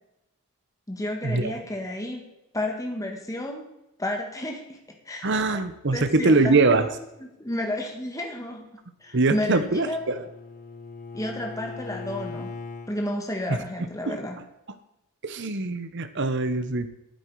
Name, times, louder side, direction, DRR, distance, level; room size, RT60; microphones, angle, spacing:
voice 1, 0.9-2.3 2.5-3.7 4.0-4.8 5.1-5.3 5.9-8.7 9.0-10.2 11.1-12.5 12.9-14.4, left 1 dB, 15° left, 2 dB, 1.4 m, -32 dB
voice 2, 5.2-6.9 9.1-10.2 13.5-13.6 14.1-14.2 15.2-16.9, right 3 dB, 55° right, 9 dB, 1.0 m, -23 dB
Bowed string instrument, 9.1-12.9, left 4 dB, 35° left, 1.2 m, -40 dB
12.5 x 9.7 x 4.8 m, 0.91 s
head